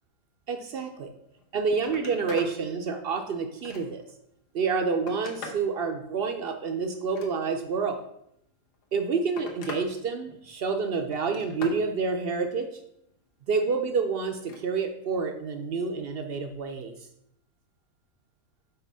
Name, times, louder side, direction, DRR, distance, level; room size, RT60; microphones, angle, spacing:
voice 1, 0.5-1.1 1.5-4.0 4.5-8.0 8.9-12.7 13.5-16.9, right 5 dB, 75° right, 5 dB, 0.5 m, -28 dB
Telephone, 1.3-1.4 1.7-2.5 3.0-4.1 4.7-5.7 6.9-7.7 8.7-9.9 10.2-10.7 11.1-11.8 14.3-14.6 16.0-16.2, left 3 dB, 80° left, 1.6 m, -42 dB
5.8 x 4.4 x 5.4 m, 0.75 s
omnidirectional pair, 1.7 m